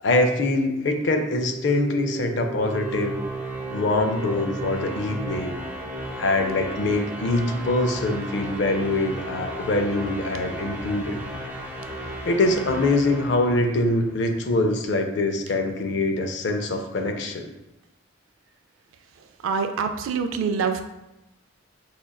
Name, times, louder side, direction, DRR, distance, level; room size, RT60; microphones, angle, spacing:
voice 1, 0.0-3.2 3.7-5.6 6.2-11.2 12.3-17.5, left 2 dB, 65° left, 4 dB, 0.4 m, -24 dB
sound 1, 1.1-14.2, right 1 dB, 10° right, 0.5 m, -34 dB
voice 2, 19.4-20.8, right 5 dB, 85° right, 8 dB, 0.3 m, -25 dB
5.1 x 2.4 x 2.2 m, 0.93 s
head